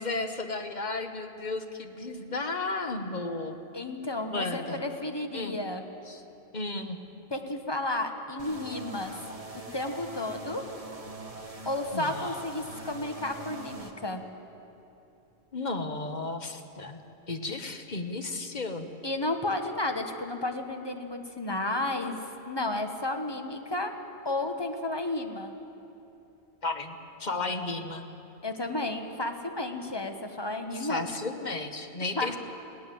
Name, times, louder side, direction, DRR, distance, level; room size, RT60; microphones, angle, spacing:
voice 1, 0.0-3.6 4.3-4.8 5.3-5.6 6.1-6.2 6.5-7.0 11.9-12.4 15.5-17.0 17.3-18.9 26.6-28.1 30.7-32.4, left 3 dB, 45° left, 6 dB, 1.2 m, -34 dB
voice 2, 3.7-5.8 7.3-9.1 9.7-10.6 11.6-14.2 19.0-22.2 22.5-23.9 24.2-25.5 28.4-31.1 32.1-32.4, left 2 dB, 25° left, 5 dB, 1.3 m, -32 dB
sound 1, 8.4-13.9, right 2 dB, 35° right, 1.5 m, -43 dB
20.5 x 17.0 x 7.8 m, 2.9 s
omnidirectional pair, 1.1 m